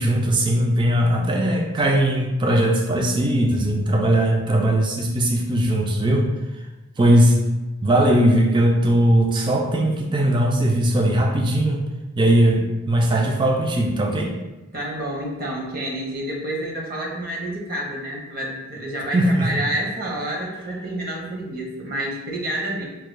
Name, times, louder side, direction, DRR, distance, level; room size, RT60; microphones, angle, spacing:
voice 1, 0.0-6.3 7.0-7.4 7.8-11.8 12.2-14.3 19.1-19.5, right 1 dB, 25° right, 1 dB, 0.3 m, -19 dB
voice 2, 14.7-22.8, right 1 dB, 45° right, -2 dB, 0.8 m, -29 dB
4.4 x 2.2 x 3.2 m, 1.1 s
head